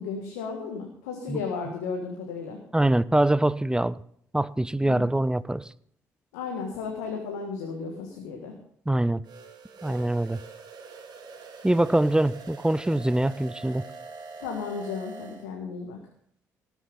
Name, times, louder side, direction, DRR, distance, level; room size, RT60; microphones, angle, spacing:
voice 1, 0.0-2.6 4.8-5.1 6.3-8.5 14.4-16.0, left 5 dB, 80° left, 2 dB, 1.7 m, -34 dB
voice 2, 2.7-3.9 4.3-5.6 8.9-9.2 9.8-10.4 11.6-13.9, right 1 dB, 10° right, 18 dB, 0.6 m, -24 dB
sound 1, 9.2-15.5, right 4 dB, 55° right, 2.5 m, -44 dB
18.5 x 7.2 x 5.4 m, 0.65 s
hypercardioid pair, 45°, 9 cm